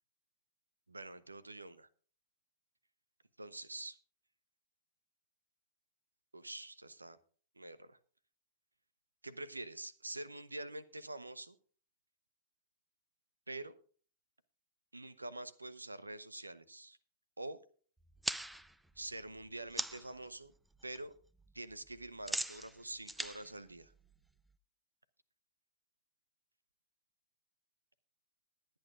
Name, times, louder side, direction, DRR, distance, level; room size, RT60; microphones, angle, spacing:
voice 1, 0.9-1.9 3.4-4.0 6.3-7.2 7.6-8.0 9.2-11.6 13.5-13.8 14.9-17.0 17.4-17.6 19.0-20.5 20.8-21.1 21.5-23.9, right 2 dB, 90° right, 17 dB, 0.9 m, -46 dB
sound 1, 18.0-20.2 20.5-21.0 21.2-24.5, right 1 dB, 5° right, 0.6 m, -42 dB
21.5 x 9.0 x 2.5 m, 0.43 s
figure-of-eight pair, 100°, 0 cm